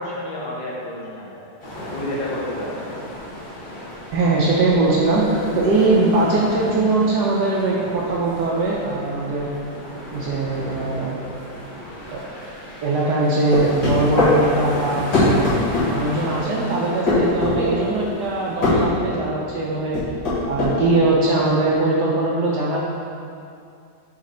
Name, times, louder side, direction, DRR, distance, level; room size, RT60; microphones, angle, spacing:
voice 1, 0.0-1.5 1.9-2.9, left 1 dB, 85° left, -5 dB, 1.9 m, -30 dB
sound 1, 1.6-18.9, equal, 30° left, 1.1 m, -35 dB
voice 2, 4.1-9.5 10.1-11.2 12.1-12.3 12.8-15.5 15.9-20.0 20.5-22.8, right 2 dB, 70° right, -4 dB, 1.2 m, -21 dB
sound 2, 13.5-14.4 15.1-15.9 17.1-17.6 18.6-18.8 19.9-20.7, left 2 dB, 70° left, 2.4 m, -19 dB
6.5 x 3.6 x 4.2 m, 2.5 s
omnidirectional pair, 2.0 m